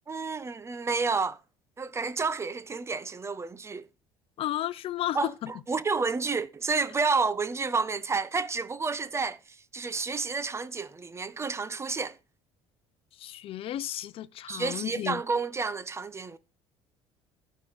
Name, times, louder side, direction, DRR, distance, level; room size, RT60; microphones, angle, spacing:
voice 1, 0.1-1.4 1.8-3.9 5.1-9.4 9.7-12.2 14.5-16.4, right 4 dB, 25° right, 0.9 m, -30 dB
voice 2, 4.4-5.5 13.2-15.2, left 13 dB, 55° left, 0.7 m, -33 dB
12.0 x 5.6 x 6.5 m
supercardioid pair, 90°, 11 cm